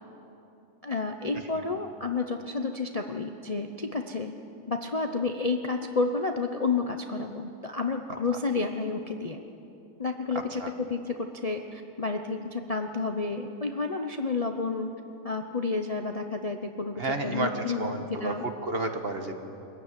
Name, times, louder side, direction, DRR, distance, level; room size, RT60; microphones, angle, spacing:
voice 1, 0.8-4.3 4.7-9.4 10.0-14.9 15.2-18.4, left 4 dB, 30° left, 4 dB, 0.7 m, -30 dB
voice 2, 17.0-19.3, right 2 dB, 40° right, 5 dB, 1.6 m, -31 dB
24.0 x 15.0 x 9.8 m, 2.9 s
omnidirectional pair, 1.6 m